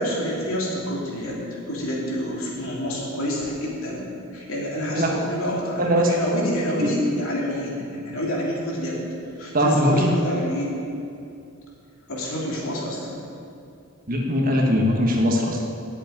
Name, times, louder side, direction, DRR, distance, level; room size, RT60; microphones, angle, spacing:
voice 1, 0.0-9.0 9.4-10.7 12.1-13.2, equal, 65° left, -4 dB, 3.0 m, -28 dB
voice 2, 4.8-5.1 5.8-6.1 6.8-6.9 9.5-10.1 14.1-15.6, equal, 40° right, 0 dB, 1.4 m, -20 dB
8.3 x 8.1 x 9.1 m, 2.6 s
head